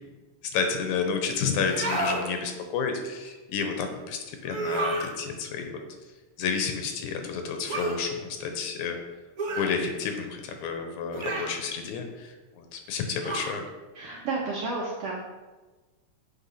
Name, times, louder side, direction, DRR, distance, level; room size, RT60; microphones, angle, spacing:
voice 1, 0.5-5.7 6.4-9.0 9.5-13.7, left 5 dB, 90° left, 5 dB, 2.4 m, -30 dB
sound 1, 1.6-2.2 4.5-5.1 7.7-8.0 9.4-9.8 11.1-11.6 13.2-13.6, right 2 dB, 50° right, 1.0 m, -30 dB
voice 2, 13.9-15.2, right 3 dB, 65° right, -3 dB, 1.6 m, -31 dB
7.1 x 4.7 x 5.7 m, 1.2 s
omnidirectional pair, 3.4 m